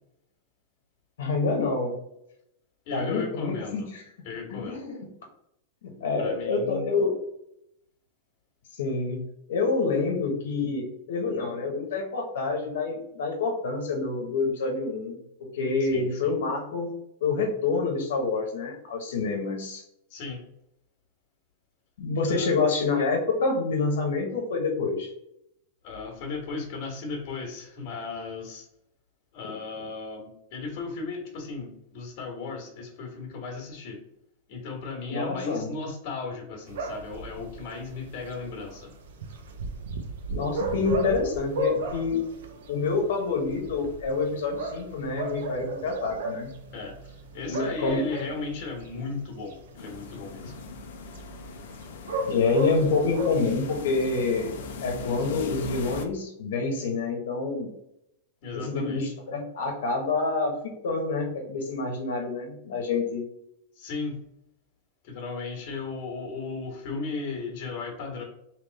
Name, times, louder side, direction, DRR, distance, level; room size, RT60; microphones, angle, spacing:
voice 1, 1.2-2.0 2.9-4.0 4.5-5.1 5.8-7.1 8.7-19.8 22.0-25.1 35.1-35.7 40.3-42.2 42.7-46.5 47.5-48.0 52.3-54.5 54.8-57.7 58.5-60.5 60.8-63.2, left 4 dB, 85° left, 2 dB, 1.0 m, -27 dB
voice 2, 2.9-3.9 4.2-4.8 6.2-6.8 15.8-16.3 20.1-20.4 22.2-22.6 25.8-28.7 29.3-34.0 34.5-38.9 46.7-50.5 58.4-59.1 63.8-64.1 65.0-68.2, left 4 dB, 40° left, 2 dB, 1.4 m, -36 dB
sound 1, 36.7-55.5, right 1 dB, 75° right, 0.8 m, -36 dB
sound 2, 49.8-56.1, left 5 dB, 60° left, 0.6 m, -40 dB
3.4 x 3.0 x 4.0 m, 0.81 s
supercardioid pair, 170°, 0 cm